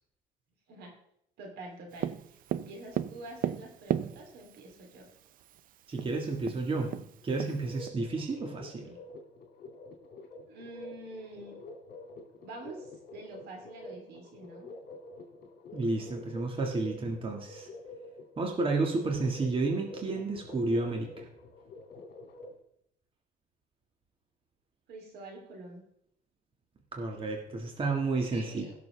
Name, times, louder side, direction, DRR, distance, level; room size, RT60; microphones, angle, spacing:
voice 1, 1.4-5.1 10.5-11.6 12.4-14.7 24.9-25.8 28.3-28.7, right 2 dB, 75° right, 1 dB, 3.1 m, -46 dB
Tap, 2.0-4.6 5.6-5.7 6.0-6.1 6.4-7.9, right 11 dB, 55° right, 0.5 m, -34 dB
voice 2, 5.9-7.0 7.2-9.0 15.7-17.7 18.4-21.3 27.0-28.6, right 3 dB, 30° right, 1 dB, 1.8 m, -31 dB
sound 1, 7.2-22.6, left 2 dB, 60° left, 2.3 m, -48 dB
17.0 x 6.8 x 3.4 m, 0.73 s
cardioid pair, 110°, 17 cm